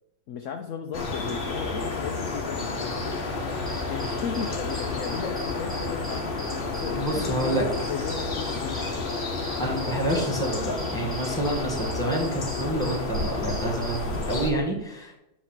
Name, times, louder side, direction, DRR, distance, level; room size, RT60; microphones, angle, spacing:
voice 1, 0.3-3.1 3.9-6.3 6.7-9.1, left 7 dB, 65° left, 5 dB, 0.8 m, -36 dB
sound 1, 0.9-14.5, left 3 dB, 40° left, 1.0 m, -31 dB
sound 2, 3.5-14.2, right 1 dB, 15° right, 1.5 m, -41 dB
voice 2, 6.9-7.6 9.6-15.2, right 1 dB, ahead, -1 dB, 1.6 m, -28 dB
7.9 x 3.1 x 6.0 m, 0.89 s
omnidirectional pair, 1.7 m